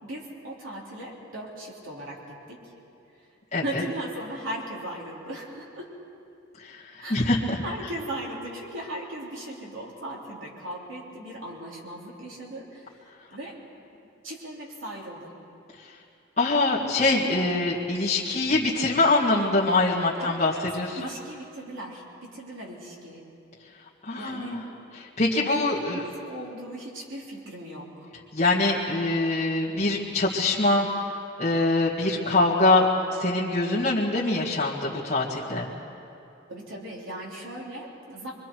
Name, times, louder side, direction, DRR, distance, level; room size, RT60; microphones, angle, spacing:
voice 1, 0.0-2.6 3.6-6.0 7.0-7.2 7.6-13.6 14.2-15.3 20.2-20.6 20.9-23.2 24.1-24.6 25.3-28.1 36.5-38.3, right 1 dB, 75° right, -3 dB, 3.4 m, -38 dB
voice 2, 3.5-3.8 6.6-6.8 7.1-7.6 16.4-21.0 24.1-24.6 25.0-26.0 28.3-30.9 31.4-32.9 33.2-35.7, left 2 dB, 35° left, -8 dB, 2.0 m, -24 dB
25.0 x 23.5 x 4.6 m, 2.7 s
head